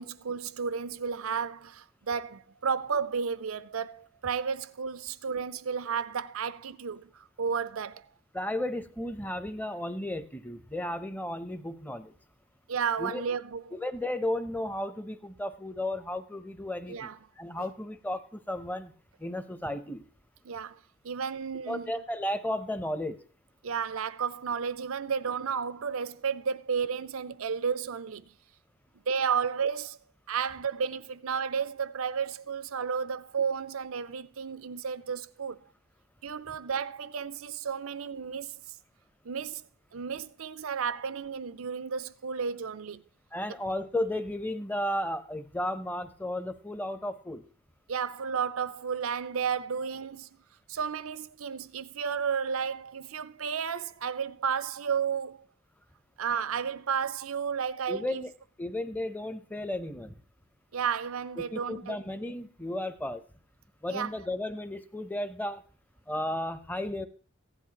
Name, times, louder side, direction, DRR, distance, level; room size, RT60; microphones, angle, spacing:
voice 1, 0.0-8.1 12.7-13.8 16.9-17.2 17.6-17.7 20.4-21.9 23.6-28.3 29.1-30.0 30.3-35.6 36.2-38.8 39.2-43.0 47.9-50.3 50.7-55.5 56.2-58.2 60.7-62.0 63.9-64.1, right 6 dB, 85° right, 0.6 m, -32 dB
voice 2, 8.3-12.1 13.0-13.3 13.7-18.9 19.2-20.0 21.7-23.2 43.3-47.4 57.9-58.3 58.6-60.1 61.3-63.2 63.8-65.6 66.1-67.1, left 1 dB, 10° left, 0.7 m, -34 dB
15.5 x 11.0 x 2.9 m
head